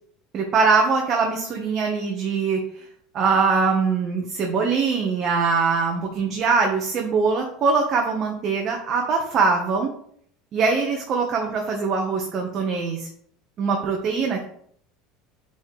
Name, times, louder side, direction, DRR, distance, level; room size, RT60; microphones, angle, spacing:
voice 1, 0.3-2.6 3.1-9.9 10.5-13.1 13.6-14.4, right 4 dB, 45° right, 1 dB, 1.3 m, -22 dB
7.3 x 4.3 x 3.4 m, 0.64 s
supercardioid pair, 100°, 0 cm